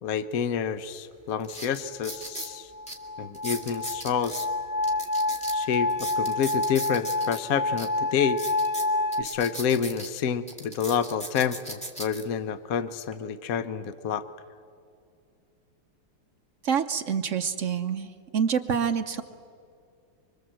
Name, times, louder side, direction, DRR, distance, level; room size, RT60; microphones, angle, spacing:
voice 1, 0.0-2.7 3.2-4.5 5.5-8.4 9.2-14.2, left 7 dB, 60° left, 12 dB, 0.9 m, -28 dB
sound 1, 0.8-0.9 1.4-2.5 2.9-3.0 3.3-4.5 4.8-7.4 7.8-7.9 8.3-10.1 10.5-12.2 12.9-13.1, right 1 dB, 5° left, 1.9 m, -38 dB
sound 2, 2.1-9.2, left 2 dB, 85° left, 2.0 m, -28 dB
voice 2, 16.6-19.2, right 7 dB, 60° right, 8 dB, 0.8 m, -27 dB
25.0 x 25.0 x 7.6 m, 2.3 s
omnidirectional pair, 2.3 m